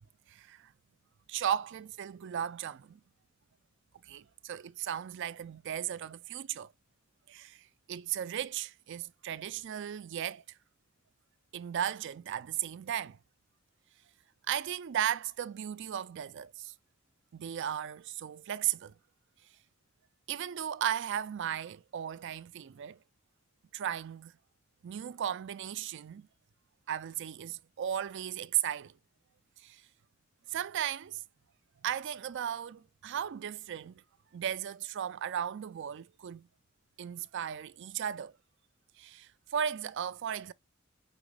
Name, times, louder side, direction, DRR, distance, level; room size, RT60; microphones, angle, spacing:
voice 1, 0.3-0.7 1.3-3.0 4.0-6.7 7.3-10.4 11.5-13.2 14.5-16.7 17.3-18.9 20.3-23.0 23.7-24.3 24.8-26.3 26.9-28.9 29.6-29.8 30.5-31.2 31.8-34.0 34.3-36.5 37.0-38.3 39.0-40.5, right 9 dB, 60° right, 0.4 m, -36 dB
4.8 x 3.9 x 5.0 m
head